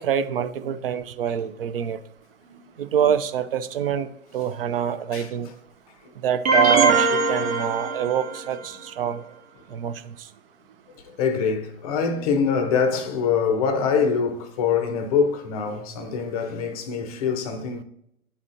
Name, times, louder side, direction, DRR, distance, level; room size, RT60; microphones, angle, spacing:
voice 1, 0.0-2.0 2.8-5.5 6.2-9.3 9.7-10.3, right 8 dB, 40° right, 0.5 m, -25 dB
voice 2, 2.4-2.7 5.1-5.3 11.0-17.8, left 6 dB, 25° left, 0.6 m, -24 dB
sound 1, 6.5-8.6, right 3 dB, 65° right, 1.2 m, -21 dB
11.0 x 4.2 x 2.5 m
hypercardioid pair, 125°, 44 cm